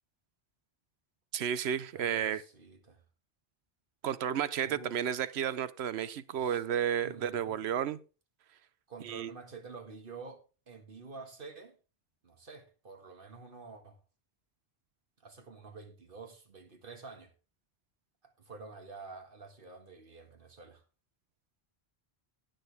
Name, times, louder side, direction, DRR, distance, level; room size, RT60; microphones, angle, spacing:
voice 1, 1.3-2.4 4.0-8.0 9.0-9.3, right 9 dB, 90° right, 17 dB, 1.0 m, -32 dB
voice 2, 1.9-3.0 4.6-4.9 6.3-6.6 7.0-7.7 8.9-11.8 12.2-14.0 15.2-17.3 18.2-20.8, right 4 dB, 55° right, 5 dB, 2.0 m, -49 dB
18.0 x 6.6 x 3.4 m, 0.33 s
omnidirectional pair, 1.1 m